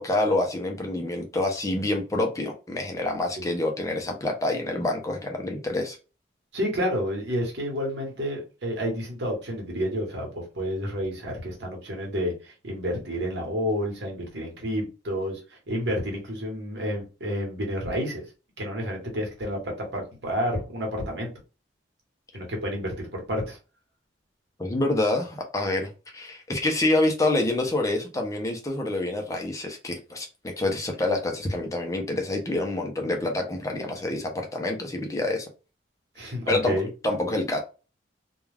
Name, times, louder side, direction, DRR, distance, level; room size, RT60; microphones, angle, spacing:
voice 1, 0.0-6.0 24.6-35.5 36.2-36.8 37.0-37.6, left 2 dB, 15° left, 2 dB, 0.5 m, -27 dB
voice 2, 6.5-18.2 18.6-21.3 22.3-23.6 36.2-36.9, equal, 65° right, 0 dB, 1.1 m, -30 dB
2.3 x 2.3 x 3.2 m, 0.32 s
head